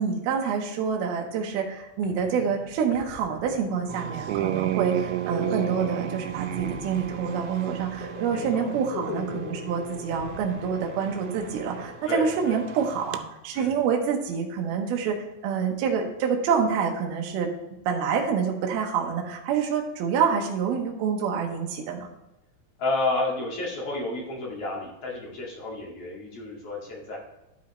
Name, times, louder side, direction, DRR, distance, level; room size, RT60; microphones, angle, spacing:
voice 1, 0.0-15.2 15.4-17.5 17.9-22.1, right 6 dB, 75° right, 1 dB, 2.4 m, -27 dB
sound 1, 1.7-12.6, left 4 dB, 80° left, 3.5 m, -40 dB
sound 2, 3.9-13.2, right 12 dB, 90° right, 3.0 m, -33 dB
voice 2, 8.3-8.7 12.1-12.6 13.5-13.7 22.8-27.2, left 2 dB, 45° left, -3 dB, 2.4 m, -31 dB
12.0 x 5.5 x 3.0 m, 0.96 s
omnidirectional pair, 5.4 m